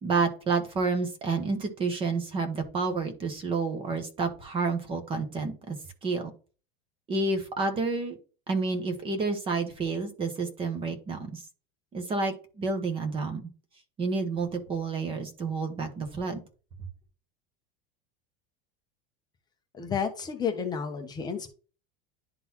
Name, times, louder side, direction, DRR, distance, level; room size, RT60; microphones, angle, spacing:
voice 1, 0.0-5.8 6.0-6.3 7.1-8.2 8.5-11.4 11.9-13.5 14.0-16.4, right 4 dB, 20° right, 7 dB, 1.0 m, -29 dB
voice 2, 19.7-21.5, left 6 dB, 15° left, 5 dB, 0.6 m, -31 dB
11.0 x 3.8 x 2.9 m, 0.37 s
supercardioid pair, 175°, 29 cm